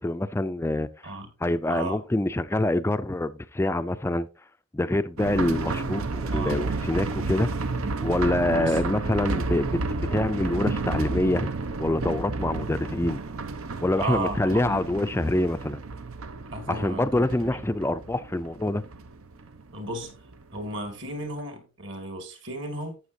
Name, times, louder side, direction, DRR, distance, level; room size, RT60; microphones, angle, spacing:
voice 1, 0.0-0.9 1.4-4.3 4.7-7.5 8.0-11.5 11.8-13.2 13.8-15.8 16.7-18.8, left 1 dB, 10° left, 0.3 m, -26 dB
sound 1, 5.2-20.7 20.9-21.0 21.4-21.5, right 3 dB, 85° right, 0.8 m, -31 dB
voice 2, 13.9-14.8 16.5-17.1 17.4-17.6 19.7-20.3 20.5-23.0, right 2 dB, 60° right, 2.2 m, -34 dB
11.5 x 8.0 x 2.7 m
head